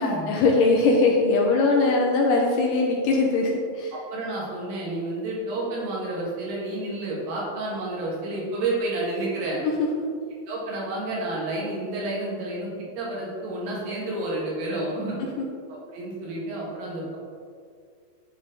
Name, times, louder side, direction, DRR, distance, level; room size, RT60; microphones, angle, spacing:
voice 1, 0.0-3.5 3.8-3.9, left 3 dB, 75° left, -1 dB, 2.1 m, -21 dB
voice 2, 3.9-9.6 10.5-12.7 13.0-15.2 15.7-17.2, right 2 dB, 85° right, -5 dB, 3.7 m, -30 dB
11.0 x 4.2 x 3.8 m, 2.1 s
omnidirectional pair, 4.5 m